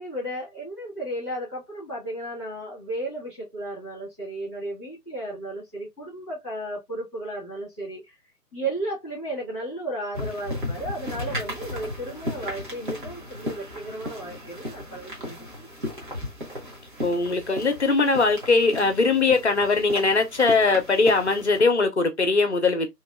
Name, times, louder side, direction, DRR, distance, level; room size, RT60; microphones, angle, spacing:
voice 1, 0.0-8.1 8.5-15.7 15.9-16.0, right 1 dB, 5° right, 0.8 m, -34 dB
sound 1, 10.1-21.6, left 1 dB, 30° right, 1.0 m, -35 dB
voice 2, 17.0-22.9, left 3 dB, 45° left, 0.7 m, -21 dB
3.0 x 2.6 x 2.4 m
figure-of-eight pair, 155°, 48 cm